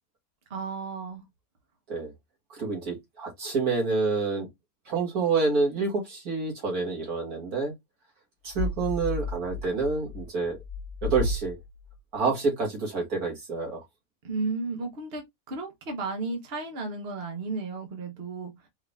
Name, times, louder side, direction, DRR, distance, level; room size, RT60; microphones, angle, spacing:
voice 1, 0.5-1.2 14.2-18.7, right 3 dB, 45° right, 1.3 m, -34 dB
voice 2, 2.5-4.5 4.9-7.7 8.4-10.6 11.0-11.6 12.1-13.8, right 4 dB, 80° right, 2.6 m, -28 dB
sound 1, 8.5-12.0, left 3 dB, 75° left, 1.2 m, -33 dB
4.9 x 2.8 x 3.5 m
omnidirectional pair, 1.6 m